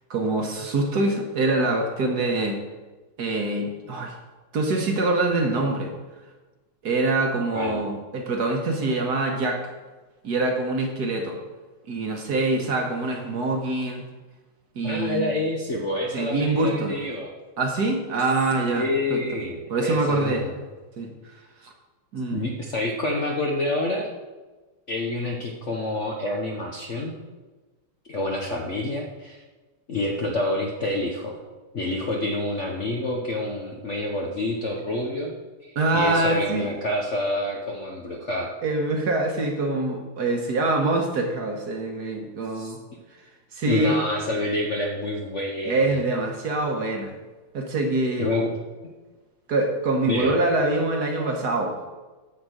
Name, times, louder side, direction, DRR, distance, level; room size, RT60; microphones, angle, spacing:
voice 1, 0.1-2.6 3.2-4.2 4.5-5.9 6.8-9.7 10.2-11.4 11.9-14.1 14.7-15.3 16.1-17.0 17.6-19.4 19.7-20.4 21.0-21.3 21.6-21.7 22.1-22.5 35.7-36.7 38.6-42.8 43.5-44.0 45.6-47.2 47.5-48.3 49.5-51.9, right 2 dB, 55° right, 2 dB, 1.5 m, -25 dB
voice 2, 7.5-7.8 14.8-17.3 18.8-20.5 22.3-24.1 24.9-27.1 28.1-29.4 29.9-31.4 31.7-35.3 35.7-38.5 42.5-42.7 43.7-46.0 48.2-48.5 50.1-50.3, left 2 dB, 50° left, 0 dB, 0.9 m, -28 dB
10.0 x 4.5 x 7.8 m, 1.2 s
omnidirectional pair, 2.3 m